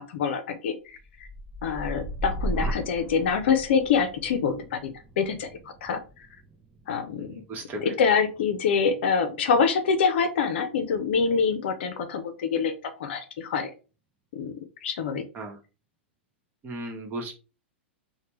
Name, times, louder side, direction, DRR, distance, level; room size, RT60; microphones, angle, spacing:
voice 1, 0.1-1.0 1.6-5.5 5.8-6.0 6.9-7.4 7.8-13.7 14.3-14.5 14.8-15.2, left 6 dB, 65° left, 7 dB, 0.5 m, -25 dB
sound 1, 0.9-9.0 9.4-9.9, right 1 dB, 15° right, 0.5 m, -37 dB
voice 2, 7.2-7.9 15.3-15.6 16.6-17.3, right 1 dB, 30° right, 3 dB, 1.0 m, -36 dB
3.2 x 2.2 x 3.0 m, 0.33 s
hypercardioid pair, 105°, 6 cm